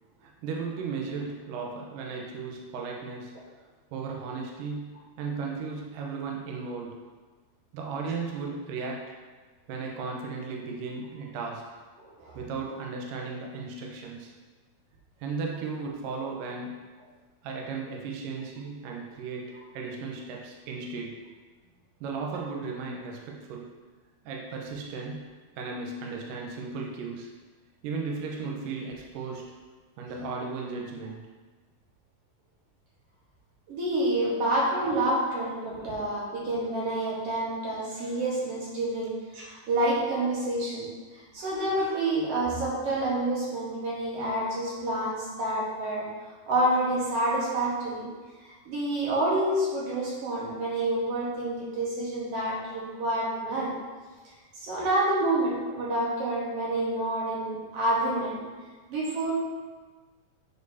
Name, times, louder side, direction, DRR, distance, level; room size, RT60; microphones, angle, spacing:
voice 1, 0.2-3.4 3.9-7.0 7.7-9.1 9.7-11.6 12.4-14.3 15.2-16.8 17.4-21.2 22.0-23.7 24.3-27.3 27.8-29.5 30.0-31.2, right 4 dB, 75° right, -1 dB, 2.3 m, -35 dB
voice 2, 12.0-12.4 33.7-40.9 41.3-46.1 46.5-48.1 48.7-53.7 54.6-58.4 58.9-59.3, right 1 dB, 55° right, -5 dB, 1.9 m, -28 dB
9.7 x 4.4 x 2.7 m, 1.4 s
omnidirectional pair, 4.3 m